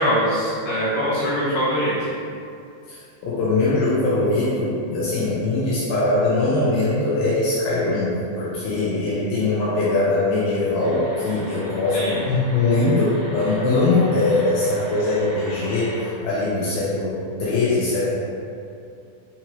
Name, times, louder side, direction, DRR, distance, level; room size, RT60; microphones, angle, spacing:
voice 1, 0.0-2.1 11.9-12.2, equal, 50° left, -12 dB, 2.1 m, -22 dB
voice 2, 2.9-18.1, left 2 dB, 80° left, -8 dB, 2.4 m, -21 dB
sound 1, 10.8-16.1, right 1 dB, 80° right, 2.0 m, -39 dB
5.7 x 2.9 x 2.9 m, 2.5 s
omnidirectional pair, 4.5 m